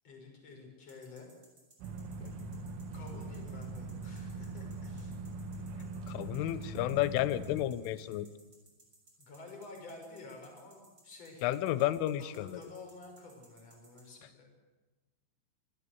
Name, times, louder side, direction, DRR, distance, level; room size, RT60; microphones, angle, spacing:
voice 1, 0.0-1.3 2.9-5.2 9.2-11.8 12.2-14.5, left 3 dB, 30° left, 2 dB, 6.4 m, -50 dB
sound 1, 0.9-14.0, right 2 dB, 20° right, 6.5 m, -62 dB
sound 2, 1.8-7.7, right 3 dB, 70° right, 3.9 m, -42 dB
voice 2, 6.1-8.3 11.4-12.6, left 13 dB, 80° left, 15 dB, 3.3 m, -32 dB
26.5 x 18.5 x 8.1 m, 1.2 s
omnidirectional pair, 5.8 m